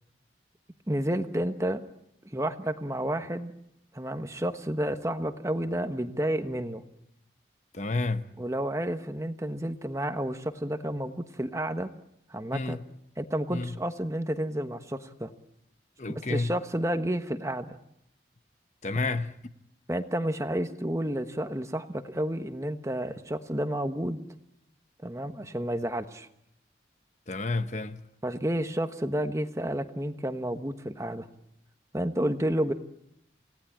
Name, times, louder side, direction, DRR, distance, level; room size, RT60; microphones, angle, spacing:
voice 1, 0.9-1.8 2.2-3.5 3.9-6.8 8.4-11.9 12.3-12.8 13.2-15.3 16.1-17.8 19.9-24.2 25.0-26.3 28.2-31.3 31.9-32.7, right 1 dB, 15° right, 1.2 m, -30 dB
voice 2, 7.7-8.3 12.5-12.8 13.5-13.8 16.0-16.5 18.8-19.5 27.3-28.1, left 3 dB, 40° left, 0.9 m, -30 dB
29.0 x 18.0 x 8.7 m
head